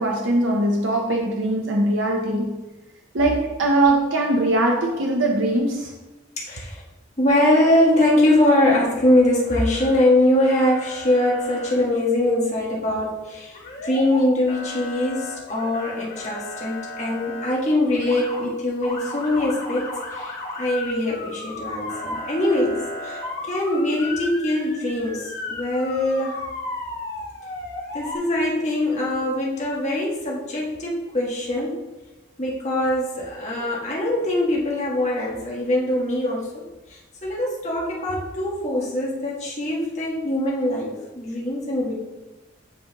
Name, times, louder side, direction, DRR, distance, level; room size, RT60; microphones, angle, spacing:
voice 1, 0.0-2.6 3.1-5.9, right 1 dB, 75° right, 0 dB, 0.7 m, -21 dB
voice 2, 6.4-6.8 7.2-26.4 27.9-31.8 32.4-36.6 36.9-41.9, left 1 dB, 35° left, -4 dB, 1.3 m, -22 dB
Motor vehicle (road) / Siren, 8.2-9.2 9.5-10.0 10.4-11.7 13.5-14.2 14.5-17.5 17.9-18.4 18.8-28.2, left 2 dB, 50° left, 1.7 m, -35 dB
9.2 x 3.7 x 2.9 m, 1.1 s
head